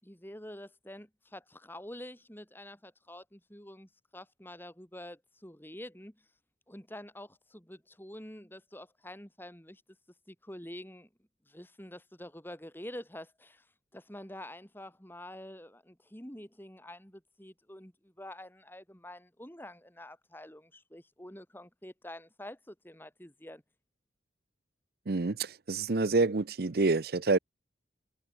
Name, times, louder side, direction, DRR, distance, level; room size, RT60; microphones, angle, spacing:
voice 1, 0.0-6.4 6.7-9.8 10.3-11.1 11.4-17.9 18.2-23.6, left 1 dB, 10° left, 5.2 m, -47 dB
voice 2, 25.1-27.4, right 3 dB, 60° right, 0.7 m, -27 dB
head